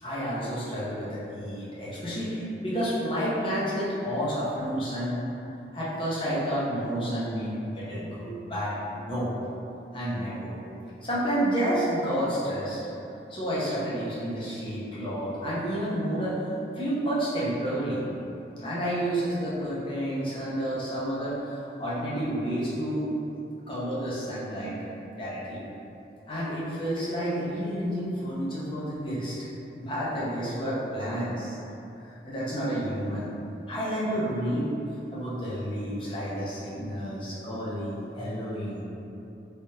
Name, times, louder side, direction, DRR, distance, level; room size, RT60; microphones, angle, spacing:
voice 1, 0.0-5.2 5.7-9.3 9.9-10.5 11.0-12.8 13.3-16.4 16.8-18.0 18.6-21.4 21.8-23.1 23.7-24.7 25.2-25.6 26.3-29.4 29.7-31.6 32.2-33.3 33.7-34.7 35.1-38.8, equal, 30° left, -8 dB, 0.7 m, -30 dB
3.2 x 3.0 x 2.8 m, 2.8 s
head